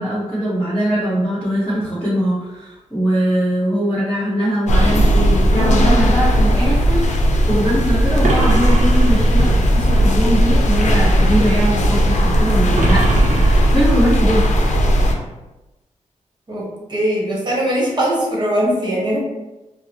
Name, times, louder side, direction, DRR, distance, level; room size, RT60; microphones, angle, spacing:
voice 1, 0.0-7.0 7.5-14.5, equal, 5° left, -13 dB, 1.3 m, -21 dB
sound 1, 4.7-15.1, equal, 70° left, 0.6 m, -15 dB
sound 2, 8.2-9.7 12.8-14.3, right 2 dB, 75° right, 0.7 m, -24 dB
voice 2, 16.5-19.2, right 1 dB, 35° right, -4 dB, 1.1 m, -20 dB
4.7 x 2.0 x 2.9 m, 1.0 s
wide cardioid pair, 140°, 13 cm